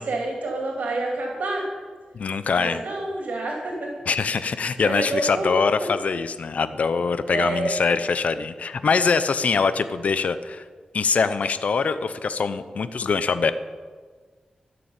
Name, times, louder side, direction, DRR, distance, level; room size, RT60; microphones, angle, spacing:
voice 1, 0.0-1.7 2.5-3.9 4.8-5.6 7.3-7.8, right 2 dB, 85° right, 0 dB, 2.7 m, -28 dB
voice 2, 2.1-2.8 4.1-10.6 10.9-13.5, left 5 dB, 65° left, 12 dB, 0.7 m, -23 dB
13.0 x 6.9 x 8.7 m, 1.6 s
wide cardioid pair, 115°, 3 cm